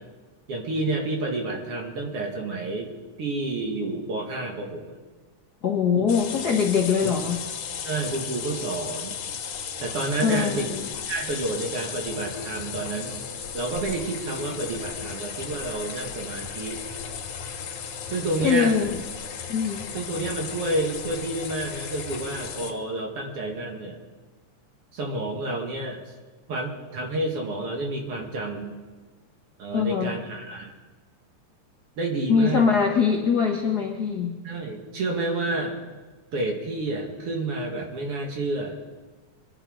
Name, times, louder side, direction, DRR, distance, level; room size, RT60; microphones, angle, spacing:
voice 1, 0.5-2.9 3.2-5.0 5.9-6.1 7.0-7.1 7.8-9.2 9.8-10.7 11.1-13.2 13.5-16.8 18.1-18.7 19.9-24.0 24.9-26.0 26.5-28.7 29.6-30.7 32.0-32.6 34.4-35.8 36.3-38.8, right 2 dB, 50° right, 1 dB, 2.6 m, -29 dB
voice 2, 5.6-7.4 10.2-10.9 18.4-18.9 19.5-19.8 29.7-30.2 32.3-34.3, left 6 dB, 55° left, 1 dB, 1.1 m, -22 dB
sound 1, 6.1-22.7, left 7 dB, 75° left, 3.0 m, -35 dB
23.5 x 10.5 x 5.1 m, 1.3 s
omnidirectional pair, 3.5 m